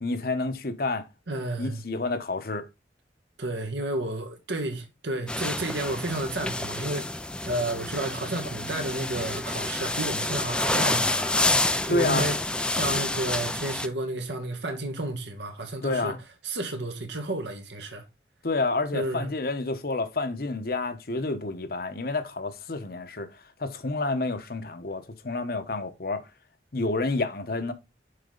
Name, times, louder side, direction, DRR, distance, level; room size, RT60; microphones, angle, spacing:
voice 1, 0.0-1.1 1.6-2.7 11.9-12.3 15.8-16.2 18.4-26.3 26.7-27.7, left 2 dB, 55° left, 0.9 m, -29 dB
voice 2, 1.3-1.8 3.4-11.3 11.8-12.4 12.7-16.1 16.4-18.0 18.9-19.3, right 1 dB, 80° right, 1.6 m, -31 dB
sound 1, 5.3-13.9, left 2 dB, 5° left, 0.3 m, -28 dB
6.6 x 4.8 x 3.9 m
head